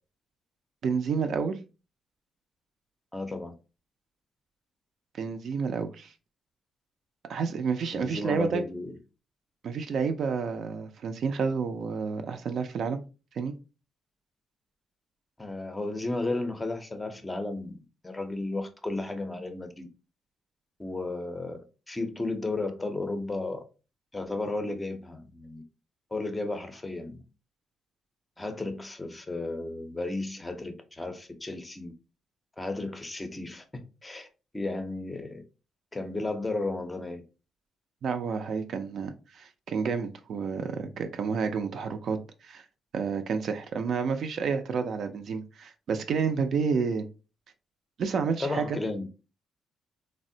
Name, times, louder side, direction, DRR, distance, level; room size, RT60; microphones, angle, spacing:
voice 1, 0.8-1.6 5.1-6.1 7.3-8.6 9.6-13.0 13.3-13.5 38.0-42.6 42.9-47.1 48.0-48.8, right 5 dB, 60° right, 0.4 m, -30 dB
voice 2, 3.1-3.5 7.9-9.0 15.4-17.8 18.0-19.9 20.8-21.6 21.9-23.6 24.1-25.6 26.1-27.2 28.4-31.9 32.6-34.3 34.5-35.4 35.9-37.2 48.4-49.1, left 2 dB, 15° left, 0.5 m, -33 dB
3.4 x 2.1 x 2.6 m
cardioid pair, 120°, 0 cm